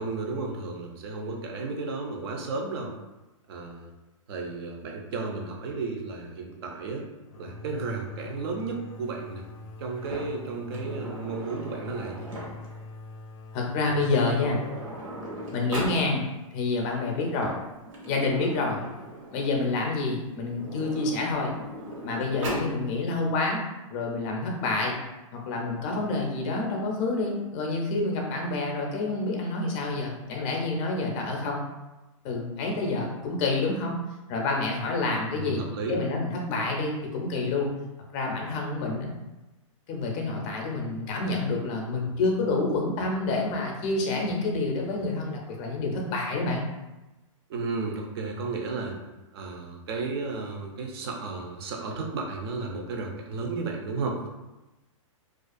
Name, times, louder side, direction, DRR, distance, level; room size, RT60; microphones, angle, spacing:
voice 1, 0.0-2.9 3.5-3.9 4.3-7.1 7.4-9.4 9.8-12.3 35.3-36.0 47.5-49.0 49.3-54.2, right 3 dB, 50° right, 1 dB, 0.5 m, -33 dB
sound 1, 7.3-16.8, left 2 dB, 90° left, 0.4 m, -44 dB
Sliding door, 10.0-12.8 13.8-13.9 14.1-16.0 17.1-19.7 20.4-22.7, right 1 dB, 70° right, 0.9 m, -38 dB
voice 2, 13.5-14.6 15.5-16.3 16.5-17.5 18.0-18.8 19.3-21.5 22.0-23.6 23.9-24.9 25.3-31.6 32.2-34.0 34.3-35.6 35.9-37.7 38.1-39.1 39.9-46.6, left 3 dB, 30° left, 0 dB, 0.5 m, -28 dB
2.4 x 2.2 x 2.5 m, 1.0 s
hypercardioid pair, 150°, 17 cm